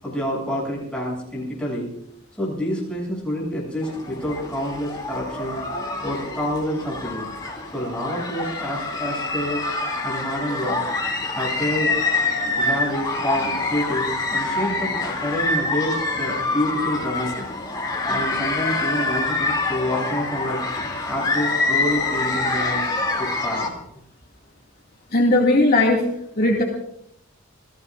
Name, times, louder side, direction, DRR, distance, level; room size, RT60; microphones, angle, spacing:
voice 1, 0.0-1.9 2.4-5.6 6.0-7.3 7.7-9.6 10.0-10.8 11.3-12.0 12.6-17.4 18.0-22.8 23.2-23.7, equal, 5° left, -5 dB, 7.9 m, -28 dB
sound 1, 3.8-23.7, left 3 dB, 20° left, 2.9 m, -26 dB
voice 2, 25.1-26.0 26.4-26.6, left 2 dB, 50° left, -2 dB, 2.4 m, -17 dB
29.0 x 18.5 x 2.6 m, 0.75 s
head